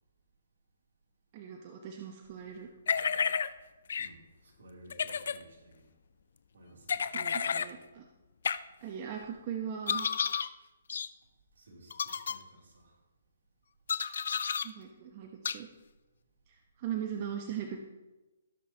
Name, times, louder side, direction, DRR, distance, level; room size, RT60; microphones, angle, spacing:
voice 1, 1.3-2.7 7.1-8.0 8.8-10.1 14.6-15.7 16.5-17.8, right 9 dB, 35° right, 2 dB, 0.9 m, -39 dB
sound 1, 2.9-3.5 3.9-4.1 4.9-5.4 6.9-7.7 8.4-8.6 9.9-10.5 10.9-11.1 11.9-12.3 13.9-14.7 15.4-15.6, left 6 dB, 65° left, 0.5 m, -31 dB
voice 2, 4.0-6.0 6.5-7.8 11.5-13.0, right 1 dB, 70° right, -2 dB, 3.1 m, -56 dB
18.0 x 6.1 x 2.9 m, 1.1 s
hypercardioid pair, 145°, 0 cm